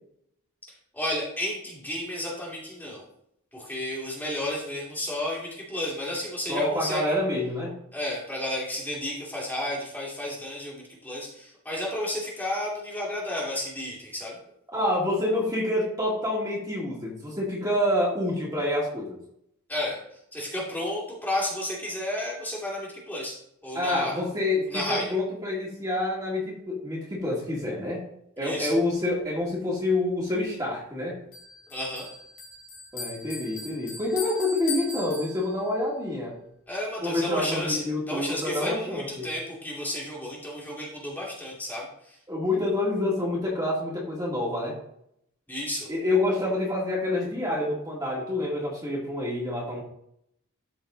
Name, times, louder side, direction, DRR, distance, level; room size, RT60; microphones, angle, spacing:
voice 1, 0.9-3.0 3.5-7.1 7.9-14.4 19.7-20.0 20.3-23.4 23.6-24.1 24.7-25.1 28.4-28.7 31.7-32.1 36.7-42.2 45.5-45.9, left 1 dB, 10° left, -5 dB, 2.3 m, -32 dB
voice 2, 6.5-7.7 14.7-19.2 23.7-28.0 28.4-31.1 32.9-36.4 37.0-39.3 42.3-44.7 45.9-49.8, left 1 dB, 15° right, -5 dB, 2.4 m, -27 dB
Bell, 31.3-35.8, left 4 dB, 70° left, 2.8 m, -39 dB
13.0 x 4.6 x 3.9 m, 0.72 s
head